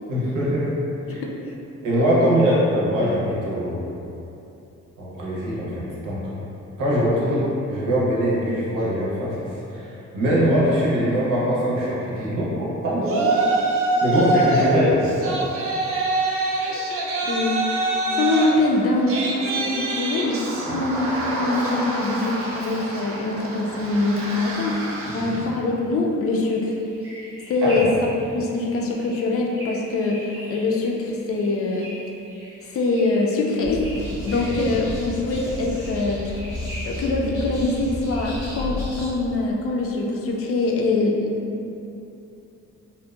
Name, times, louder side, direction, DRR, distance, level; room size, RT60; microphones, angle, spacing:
voice 1, 0.1-0.7 1.1-1.2 1.8-3.8 5.0-6.2 6.8-13.6 14.0-15.4 20.7-20.8 25.3-25.4 27.6-27.9 34.4-34.5, equal, 90° right, -7 dB, 0.7 m, -22 dB
Yell, 13.0-14.7 15.0-25.5, right 2 dB, 50° right, 0.5 m, -25 dB
voice 2, 17.3-17.6 18.1-21.1 21.4-24.9 25.1-26.7 27.5-27.9 28.3-31.9 32.7-36.3 36.9-41.3, left 2 dB, 50° left, -1 dB, 0.4 m, -23 dB
sound 1, 26.3-38.6, equal, 10° right, 0.7 m, -42 dB
sound 2, 33.6-39.1, left 2 dB, 85° left, 0.8 m, -32 dB
2.7 x 2.1 x 2.3 m, 2.8 s
cardioid pair, 90°, 30 cm